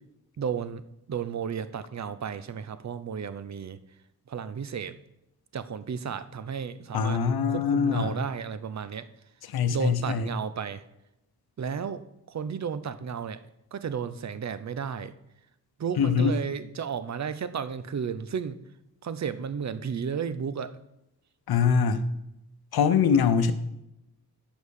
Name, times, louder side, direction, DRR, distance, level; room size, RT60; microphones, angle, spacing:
voice 1, 0.4-0.8 1.1-3.8 4.3-5.0 5.5-7.2 7.5-9.1 9.7-10.8 11.6-12.0 12.3-13.4 13.7-15.1 15.8-18.6 19.0-20.7, right 7 dB, 50° right, 13 dB, 0.7 m, -33 dB
voice 2, 6.9-8.2 9.5-10.3 16.0-16.3 21.5-22.1 22.7-23.5, left 6 dB, 80° left, 11 dB, 0.8 m, -23 dB
8.0 x 5.3 x 6.4 m, 0.87 s
cardioid pair, 75°, 37 cm